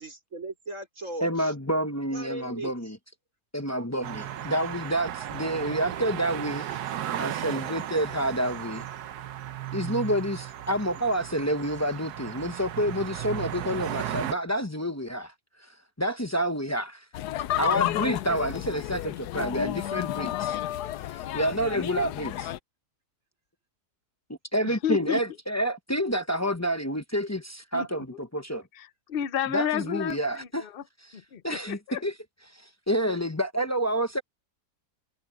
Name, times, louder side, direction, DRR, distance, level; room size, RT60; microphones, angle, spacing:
voice 1, 0.0-1.5 2.1-2.7, right 2 dB, 50° right, 5.4 m, -38 dB
voice 2, 1.2-3.0 3.5-6.6 7.2-8.8 9.7-15.3 16.0-17.0 17.6-20.6 21.3-22.5 24.5-28.1 28.3-28.6 29.5-30.7 31.4-32.1 32.6-34.2, equal, 15° left, 0.7 m, -28 dB
sound 1, 4.0-14.4, right 11 dB, 75° right, 1.4 m, -35 dB
sound 2, 17.1-22.6, left 13 dB, 85° left, 1.2 m, -31 dB
voice 3, 24.6-25.2 27.7-28.2 28.7-30.8 31.1-32.0, left 9 dB, 45° left, 0.8 m, -32 dB
omnidirectional pair, 1.7 m